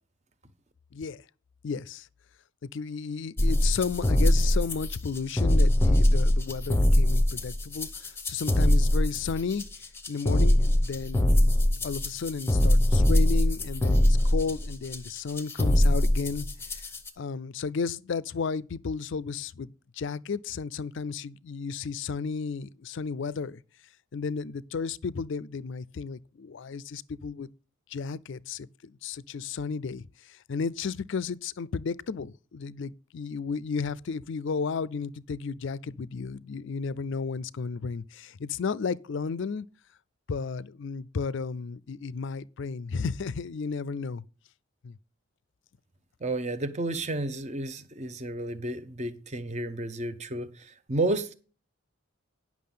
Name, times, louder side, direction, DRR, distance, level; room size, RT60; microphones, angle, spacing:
voice 1, 0.9-1.2 1.6-2.1 2.6-9.6 10.1-11.4 11.8-16.5 16.7-16.9 17.2-23.6 24.1-27.5 27.9-39.7 40.3-44.2 44.8-45.0, left 5 dB, 55° left, 0.4 m, -33 dB
sound 1, 3.4-17.1, left 1 dB, 10° left, 0.7 m, -23 dB
voice 2, 46.2-51.3, right 2 dB, 30° right, 0.7 m, -31 dB
10.5 x 6.1 x 5.5 m
head